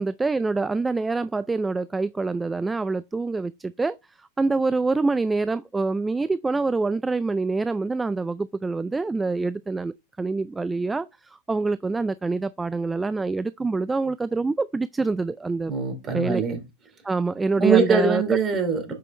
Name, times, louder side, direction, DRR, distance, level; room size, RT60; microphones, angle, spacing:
voice 1, 0.0-15.7 16.1-16.4 17.0-18.2, right 3 dB, 10° right, 0.3 m, -26 dB
voice 2, 15.7-16.6 17.6-18.9, right 5 dB, 30° right, 2.7 m, -22 dB
7.6 x 5.3 x 3.2 m
hypercardioid pair, 100°, 0 cm